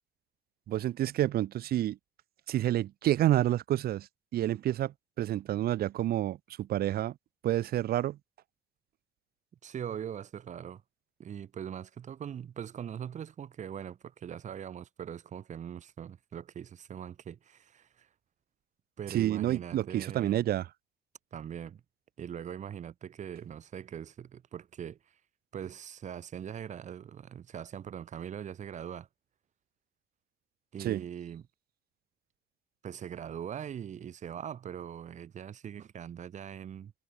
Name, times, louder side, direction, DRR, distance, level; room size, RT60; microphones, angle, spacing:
voice 1, 0.7-2.0 2.5-4.1 4.3-7.1 7.4-8.2 19.1-20.7 30.8-31.0, right 13 dB, 65° right, 1.9 m, -29 dB
voice 2, 9.6-10.8 11.2-18.1 19.0-20.4 21.3-21.8 22.2-25.0 25.5-29.1 30.7-31.5 32.8-36.9, right 9 dB, 45° right, 1.8 m, -41 dB
cardioid pair, 110°, 17 cm